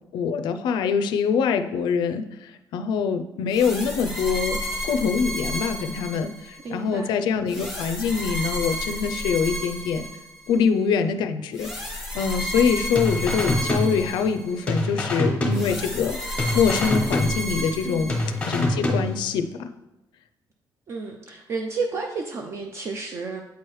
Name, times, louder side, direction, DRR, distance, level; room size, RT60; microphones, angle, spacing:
voice 1, 0.1-4.6 4.8-10.1 10.5-18.2 18.4-19.7, left 6 dB, 80° left, 8 dB, 0.4 m, -24 dB
sound 1, 3.5-6.7 7.5-10.6 11.5-14.7 15.5-18.6, equal, 5° right, 1.2 m, -32 dB
voice 2, 6.6-7.1 17.8-18.2 20.9-23.4, right 4 dB, 35° right, 3 dB, 0.4 m, -31 dB
sound 2, 13.0-14.4 14.7-16.1 16.4-17.8 18.1-19.4, left 1 dB, 15° left, 0.8 m, -26 dB
8.1 x 4.7 x 3.1 m, 0.93 s
cardioid pair, 175°, 8 cm